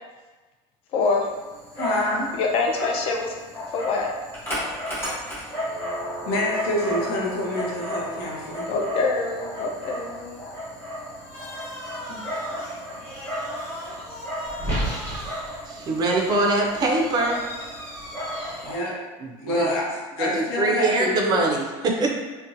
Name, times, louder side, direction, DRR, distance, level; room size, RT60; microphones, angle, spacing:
voice 1, 0.9-1.3 2.3-3.3 3.7-4.1 8.7-10.4, left 4 dB, 45° left, 1 dB, 0.4 m, -25 dB
Dog, 1.0-18.8, equal, 15° left, 0.9 m, -33 dB
voice 2, 1.7-2.3 6.3-8.7 12.1-12.2 18.6-19.0 19.4-19.9 20.2-21.4, left 1 dB, 90° left, -4 dB, 0.8 m, -26 dB
voice 3, 15.7-17.4 19.2-19.7 20.2-22.1, right 2 dB, 30° right, 0 dB, 0.4 m, -23 dB
2.6 x 2.1 x 2.5 m, 1.3 s
cardioid pair, 145°, 14 cm